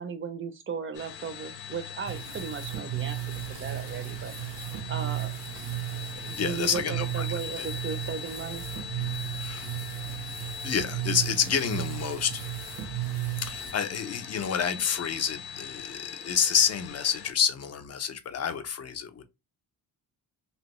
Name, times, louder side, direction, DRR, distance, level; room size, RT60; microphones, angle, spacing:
voice 1, 0.0-3.2 3.6-4.6 4.9-5.3 6.2-8.7, right 6 dB, 35° right, 0.4 m, -36 dB
sound 1, 0.9-17.3, left 8 dB, 85° left, 0.6 m, -41 dB
sound 2, 2.1-13.7, right 15 dB, 85° right, 0.7 m, -35 dB
voice 2, 6.4-7.7 9.4-9.7 10.6-12.5 13.4-19.2, left 7 dB, 45° left, 0.5 m, -29 dB
2.9 x 2.6 x 3.0 m
wide cardioid pair, 165°, 37 cm